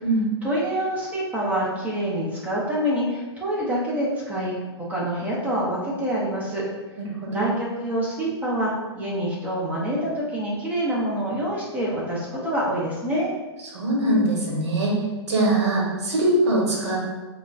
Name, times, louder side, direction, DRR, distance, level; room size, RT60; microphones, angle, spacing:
voice 1, 0.4-4.6 4.9-6.6 7.3-13.3, right 1 dB, 10° right, -5 dB, 0.5 m, -26 dB
voice 2, 7.0-7.4 13.6-15.0 15.3-17.0, right 1 dB, 80° right, -3 dB, 1.1 m, -22 dB
3.8 x 2.0 x 2.3 m, 1.2 s
hypercardioid pair, 145°, 15 cm